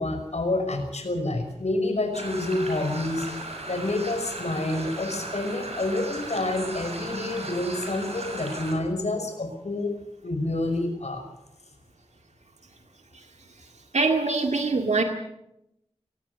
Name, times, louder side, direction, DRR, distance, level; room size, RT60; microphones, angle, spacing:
voice 1, 0.0-3.3 3.7-9.9 10.2-11.2, left 2 dB, 75° left, 6 dB, 5.7 m, -28 dB
sound 1, 2.1-8.7, right 2 dB, 65° right, 7.3 m, -37 dB
voice 2, 13.9-15.0, right 3 dB, 80° right, 4 dB, 2.0 m, -24 dB
23.5 x 18.5 x 7.0 m, 0.82 s
wide cardioid pair, 65°, 11 cm